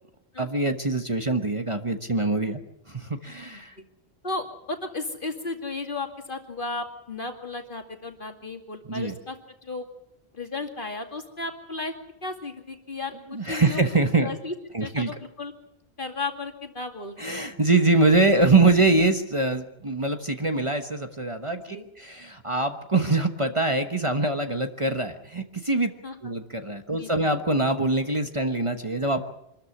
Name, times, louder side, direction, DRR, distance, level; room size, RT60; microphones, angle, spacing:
voice 1, 0.4-2.6 2.9-3.8 8.9-9.1 13.3-14.3 14.7-15.1 17.2-25.9 26.2-29.2, right 2 dB, 30° right, 6 dB, 1.2 m, -24 dB
voice 2, 4.2-9.4 9.6-9.9 10.3-11.9 12.2-13.8 14.2-14.5 14.8-15.5 16.0-17.2 21.7-21.8 26.0-26.2 27.0-27.4, left 3 dB, 50° left, 4 dB, 2.6 m, -34 dB
25.0 x 13.5 x 9.9 m, 0.82 s
omnidirectional pair, 1.1 m